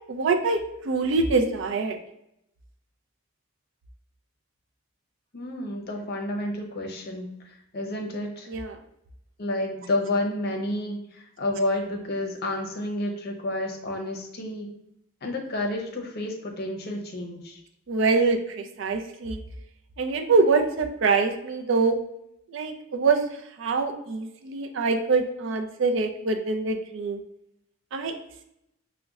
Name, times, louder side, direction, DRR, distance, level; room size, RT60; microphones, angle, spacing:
voice 1, 0.1-2.0 8.5-8.8 17.9-19.4 20.0-22.0 22.5-23.2 23.6-27.2 27.9-28.1, right 4 dB, 65° right, 5 dB, 0.4 m, -24 dB
voice 2, 5.3-8.5 9.4-14.7 15.2-17.6, left 1 dB, 50° left, 2 dB, 0.6 m, -30 dB
5.0 x 2.1 x 2.3 m, 0.80 s
head